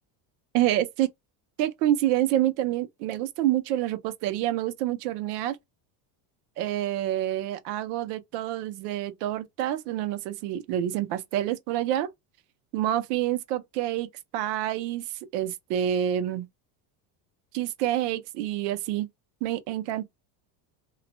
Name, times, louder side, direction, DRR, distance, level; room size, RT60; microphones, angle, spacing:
voice 1, 0.5-1.1 1.6-5.6 6.6-12.1 12.7-15.1 15.3-16.5 17.5-19.1 19.4-20.0, right 12 dB, 85° right, 0.7 m, -27 dB
2.4 x 2.1 x 2.8 m
cardioid pair, 175°, 46 cm